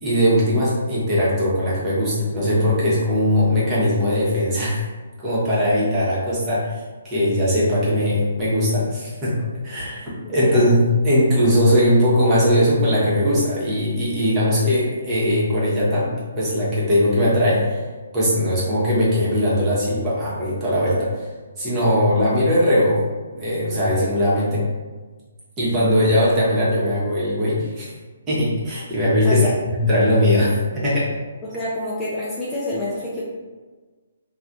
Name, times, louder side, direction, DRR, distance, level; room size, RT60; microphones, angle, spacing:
voice 1, 0.0-4.9 5.2-9.3 9.6-17.8 18.1-21.3 21.6-23.0 23.3-24.6 25.6-27.9 28.3-31.1, equal, 20° right, -8 dB, 1.0 m, -20 dB
voice 2, 10.2-10.8 29.2-29.5 31.4-33.2, left 1 dB, 10° left, -8 dB, 0.5 m, -28 dB
3.2 x 2.3 x 2.6 m, 1.3 s
hypercardioid pair, 150°, 0 cm